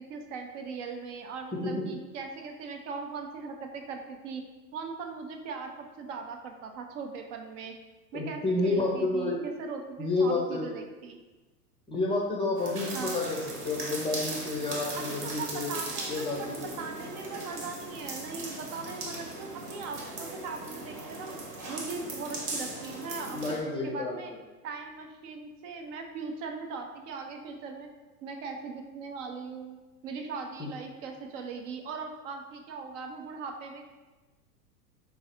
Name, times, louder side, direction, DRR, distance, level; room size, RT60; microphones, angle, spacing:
voice 1, 0.0-4.4 4.7-7.8 8.1-11.2 12.9-13.2 14.9-21.4 21.7-24.3 24.6-27.9 28.2-29.8 30.0-33.9, right 4 dB, 50° right, 4 dB, 0.7 m, -39 dB
voice 2, 8.1-9.4 10.0-10.6 11.9-15.7 16.1-16.7 23.3-24.1 30.6-30.7, left 3 dB, 10° left, -2 dB, 0.5 m, -30 dB
sound 1, 12.6-23.6, right 2 dB, 70° right, 1.2 m, -38 dB
3.9 x 2.5 x 4.3 m, 1.2 s
hypercardioid pair, 100°, 47 cm